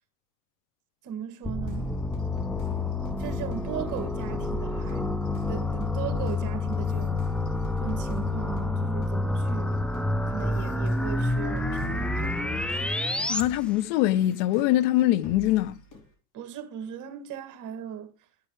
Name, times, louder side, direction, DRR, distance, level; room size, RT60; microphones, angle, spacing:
voice 1, 1.0-1.9 3.2-7.3 7.8-9.8 10.3-12.6 16.3-18.1, right 9 dB, 45° right, 1.7 m, -38 dB
sound 1, 1.4-13.4, left 2 dB, 5° left, 0.4 m, -28 dB
sound 2, 1.7-8.7 9.0-16.1, equal, 45° left, 3.4 m, -47 dB
voice 2, 13.3-15.7, left 14 dB, 60° left, 0.6 m, -23 dB
10.5 x 8.3 x 3.2 m
supercardioid pair, 110°, 43 cm